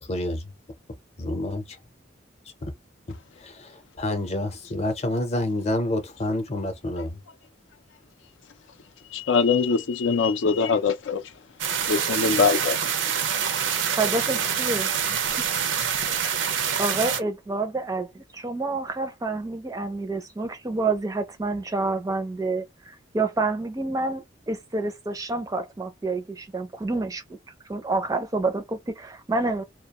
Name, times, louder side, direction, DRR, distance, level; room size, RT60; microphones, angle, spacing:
voice 1, 0.1-0.5 1.2-1.8 2.6-2.7 3.1-7.2, left 1 dB, 35° left, 0.6 m, -28 dB
voice 2, 9.1-11.2 11.9-12.8, left 5 dB, 90° left, 0.4 m, -22 dB
sound 1, 11.6-17.2, right 7 dB, 80° right, 0.5 m, -26 dB
voice 3, 13.8-15.4 15.9-16.2 16.8-27.4 27.6-29.6, right 3 dB, 20° right, 0.4 m, -28 dB
2.2 x 2.1 x 2.8 m
head